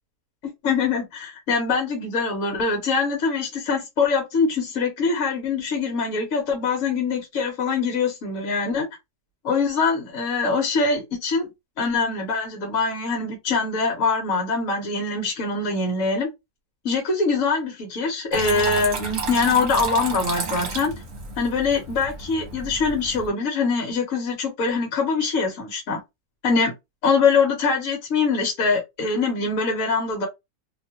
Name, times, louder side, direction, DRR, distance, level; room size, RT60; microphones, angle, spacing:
voice 1, 0.6-8.9 9.4-11.5 11.8-16.3 16.8-20.9 21.4-26.0 26.4-26.7 27.0-30.3, left 4 dB, 60° left, 1.2 m, -23 dB
Water tap faucet / Trickle dribble, 18.3-23.3, right 4 dB, 65° right, 1.3 m, -32 dB
2.9 x 2.3 x 2.8 m
omnidirectional pair, 1.7 m